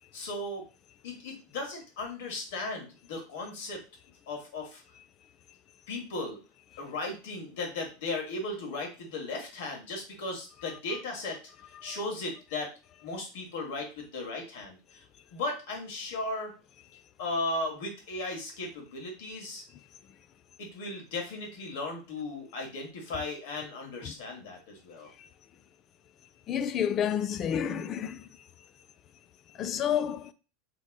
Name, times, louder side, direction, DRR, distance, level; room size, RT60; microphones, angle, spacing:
voice 1, 0.1-0.7 1.0-3.8 4.3-4.8 5.9-6.4 6.8-11.4 11.8-12.7 13.0-15.0 15.3-16.5 17.2-19.6 20.6-25.1, left 2 dB, 70° left, 1.3 m, -36 dB
voice 2, 26.5-28.3 29.6-30.3, left 9 dB, 40° left, 0.3 m, -29 dB
3.2 x 2.8 x 2.3 m
hypercardioid pair, 95°, 0 cm